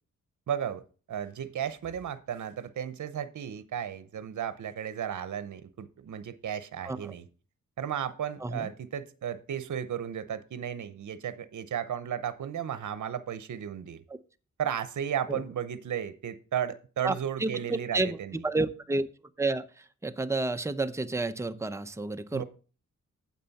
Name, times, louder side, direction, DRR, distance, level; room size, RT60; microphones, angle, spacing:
voice 1, 0.5-0.8 1.1-7.3 7.8-14.0 14.6-18.4 22.3-22.4, right 9 dB, 70° right, 14 dB, 0.8 m, -34 dB
voice 2, 17.4-18.2 18.4-19.1 19.4-19.6 20.0-22.4, right 2 dB, 10° right, 10 dB, 0.7 m, -30 dB
9.3 x 7.6 x 4.1 m, 0.37 s
cardioid pair, 90°, 31 cm